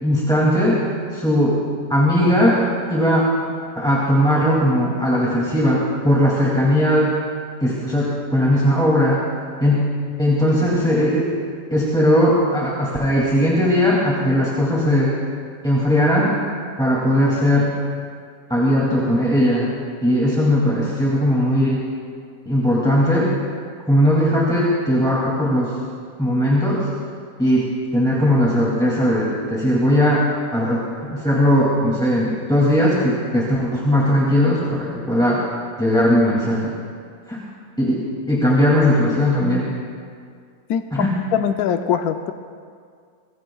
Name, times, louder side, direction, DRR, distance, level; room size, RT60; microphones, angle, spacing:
voice 1, 0.0-0.8 1.1-1.6 1.9-2.6 2.9-3.2 3.8-7.1 7.6-9.2 9.6-9.9 10.2-11.3 11.7-15.1 15.6-16.4 16.8-17.7 18.5-19.7 20.0-21.8 22.5-23.3 23.9-25.7 26.2-26.9 27.4-30.2 30.5-35.4 35.8-36.7 37.3-37.4 37.8-37.9 38.3-39.7 40.9-41.1, equal, ahead, -6 dB, 2.3 m, -18 dB
voice 2, 40.7-42.3, left 8 dB, 70° left, 7 dB, 1.1 m, -22 dB
25.5 x 21.0 x 2.3 m, 2.2 s
omnidirectional pair, 1.8 m